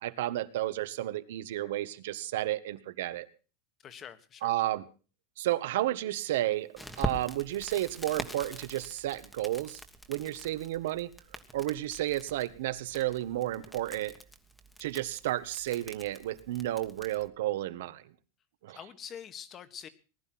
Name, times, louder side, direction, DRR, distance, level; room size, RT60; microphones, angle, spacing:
voice 1, 0.0-3.3 4.4-4.8 5.4-9.8 10.1-11.1 11.5-14.1 14.8-18.1 18.6-18.8, right 15 dB, 70° right, 12 dB, 1.6 m, -32 dB
voice 2, 3.8-4.5 18.7-19.9, left 8 dB, 25° left, 13 dB, 1.5 m, -45 dB
Crackle, 6.8-17.3, equal, 5° left, 1.4 m, -43 dB
19.5 x 11.5 x 6.1 m, 0.37 s
supercardioid pair, 165°, 0 cm